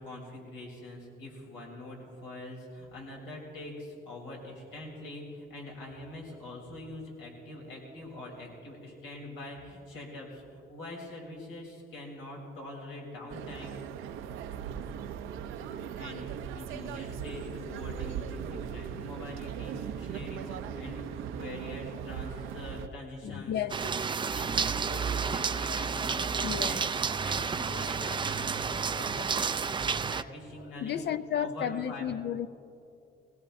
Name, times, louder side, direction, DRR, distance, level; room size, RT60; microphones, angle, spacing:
voice 1, 0.0-13.8 15.9-23.5 24.2-26.8 27.2-31.0 31.4-32.1, left 1 dB, 85° left, -2 dB, 3.4 m, -44 dB
sound 1, 13.3-22.9, right 8 dB, 85° right, 0.6 m, -39 dB
voice 2, 23.2-23.9 24.2-24.3 25.8-25.9 26.4-26.9 29.0-29.3 29.8-30.0 30.8-32.5, left 9 dB, 60° left, 12 dB, 0.5 m, -34 dB
sound 2, 23.7-30.2, right 6 dB, 25° right, 0.4 m, -31 dB
21.5 x 17.0 x 2.6 m, 2.5 s
cardioid pair, 90°, 20 cm